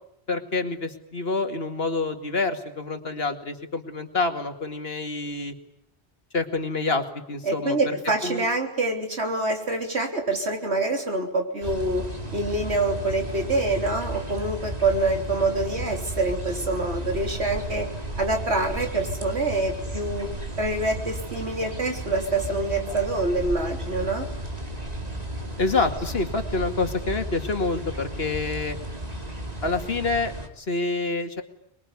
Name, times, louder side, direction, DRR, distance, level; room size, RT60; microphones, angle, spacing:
voice 1, 0.3-5.5 6.3-7.8 8.2-8.5 25.6-28.8 29.6-31.4, left 3 dB, 65° left, 7 dB, 2.5 m, -27 dB
voice 2, 7.4-12.0 12.3-17.9 18.2-20.3 20.6-24.3, right 2 dB, 80° right, 3 dB, 4.0 m, -26 dB
sound 1, 11.6-30.5, right 1 dB, 35° right, 2.8 m, -34 dB
25.5 x 22.0 x 9.7 m, 0.76 s
omnidirectional pair, 1.1 m